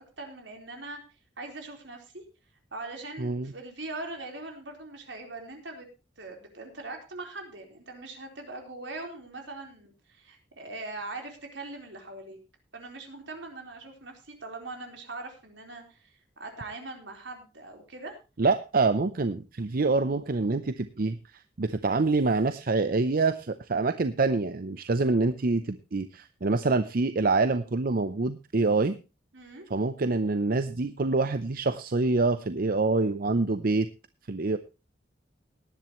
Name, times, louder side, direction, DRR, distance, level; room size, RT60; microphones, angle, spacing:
voice 1, 0.2-1.0 1.4-2.2 2.7-5.9 6.2-12.4 12.7-18.2 29.3-29.7, right 2 dB, 75° right, 3 dB, 4.1 m, -41 dB
voice 2, 3.2-3.5 18.4-29.0 29.7-33.9 34.3-34.6, right 3 dB, 50° right, 12 dB, 0.6 m, -26 dB
18.0 x 11.0 x 3.1 m, 0.29 s
head